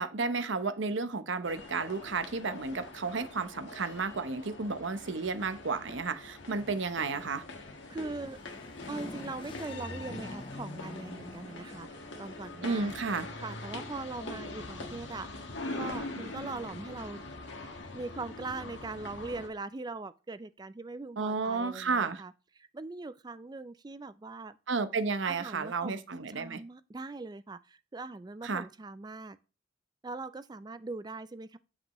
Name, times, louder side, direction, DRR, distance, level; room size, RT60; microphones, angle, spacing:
voice 1, 0.0-7.4 12.6-13.3 21.2-22.2 24.7-26.6 28.4-28.6, right 4 dB, 70° right, 0.8 m, -32 dB
sound 1, 1.4-19.5, left 2 dB, 70° left, 1.5 m, -43 dB
sound 2, 6.3-12.2, left 2 dB, 25° left, 0.7 m, -47 dB
voice 2, 7.9-8.4 8.9-13.0 13.4-15.5 15.7-17.2 17.9-24.6 25.2-26.0 26.4-29.4 30.0-31.6, right 3 dB, 20° right, 0.4 m, -41 dB
7.7 x 6.0 x 3.0 m
head